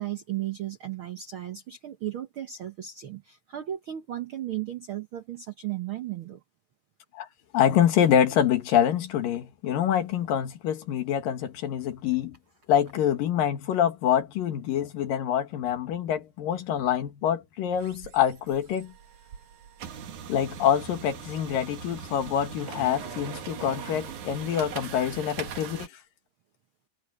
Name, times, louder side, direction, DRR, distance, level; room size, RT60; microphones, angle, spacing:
voice 1, 0.0-6.4, right 12 dB, 85° right, 1.1 m, -35 dB
voice 2, 7.5-12.4 12.7-18.9 20.3-25.9, left 9 dB, 75° left, 3.4 m, -25 dB
sound 1, 17.7-25.9, right 7 dB, 60° right, 3.1 m, -40 dB
omnidirectional pair, 4.0 m